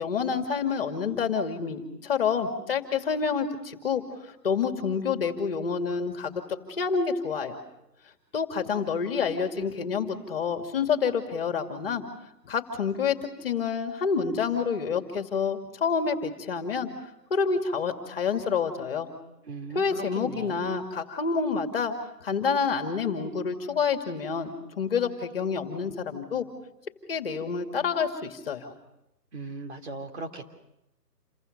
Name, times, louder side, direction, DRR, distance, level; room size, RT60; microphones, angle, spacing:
voice 1, 0.0-6.4 6.7-7.6 8.3-12.0 12.4-13.2 13.4-16.9 17.3-19.1 19.7-21.9 22.2-26.4 27.1-28.7, left 6 dB, 35° left, 6 dB, 2.4 m, -28 dB
voice 2, 19.4-20.6 29.3-30.5, right 3 dB, 40° right, 3 dB, 3.3 m, -38 dB
29.0 x 23.5 x 6.7 m, 0.87 s
hypercardioid pair, 165°, 49 cm